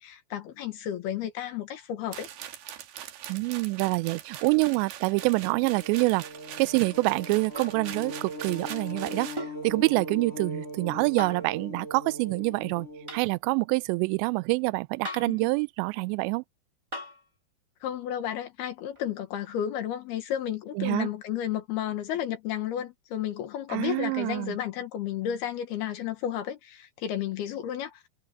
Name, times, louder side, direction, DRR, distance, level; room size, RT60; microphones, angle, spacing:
voice 1, 0.0-2.3 15.3-15.4 17.8-28.0, left 10 dB, 70° left, 3.2 m, -32 dB
sound 1, 2.1-9.4, right 11 dB, 65° right, 3.4 m, -43 dB
voice 2, 3.3-6.3 6.6-12.9 13.1-16.4 20.8-21.1 23.7-24.6, right 26 dB, 85° right, 2.7 m, -26 dB
sound 2, 5.2-13.2, equal, 30° left, 1.5 m, -40 dB
sound 3, 7.5-7.8 9.4-9.7 11.2-11.5 13.1-13.3 15.0-15.4 16.9-17.2 19.0-19.1, equal, 10° right, 2.5 m, -38 dB
omnidirectional pair, 5.1 m